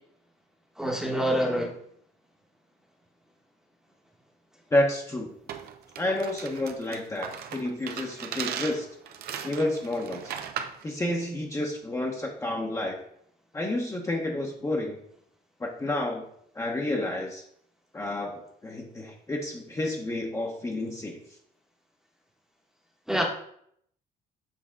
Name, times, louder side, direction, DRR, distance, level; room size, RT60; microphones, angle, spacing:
voice 1, 0.8-1.7 23.1-23.2, equal, 5° right, 0 dB, 1.1 m, -26 dB
voice 2, 4.7-5.3 6.0-8.9 9.4-10.3 10.8-13.0 13.5-15.0 15.6-16.2 16.5-17.4 17.9-21.2, left 1 dB, 15° left, 0 dB, 1.0 m, -30 dB
sound 1, 5.5-10.8, right 8 dB, 70° right, 0.6 m, -37 dB
7.5 x 3.4 x 3.6 m, 0.68 s
cardioid pair, 110°, 17 cm